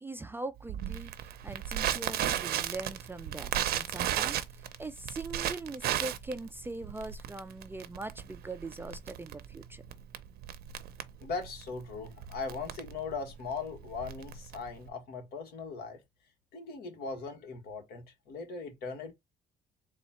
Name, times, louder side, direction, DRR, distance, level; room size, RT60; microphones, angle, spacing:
voice 1, 0.0-9.8, right 2 dB, 15° right, 0.4 m, -42 dB
Crackle, 0.7-14.9, right 11 dB, 70° right, 0.6 m, -35 dB
voice 2, 11.2-16.0 16.5-19.1, left 4 dB, 70° left, 1.5 m, -39 dB
4.0 x 2.4 x 4.2 m
cardioid pair, 110°, 17 cm